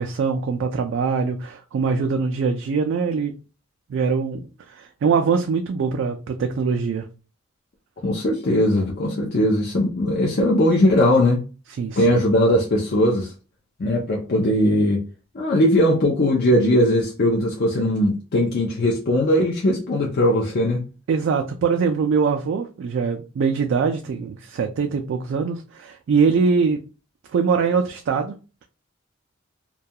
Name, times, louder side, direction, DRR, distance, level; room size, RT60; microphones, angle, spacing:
voice 1, 0.0-3.3 3.9-7.1 11.8-12.2 21.1-26.8 27.3-28.3, right 5 dB, 60° right, 0.3 m, -23 dB
voice 2, 8.0-11.5 12.0-13.3 13.8-15.0 15.3-20.9, left 1 dB, 50° left, 0.5 m, -19 dB
2.3 x 2.2 x 2.7 m
head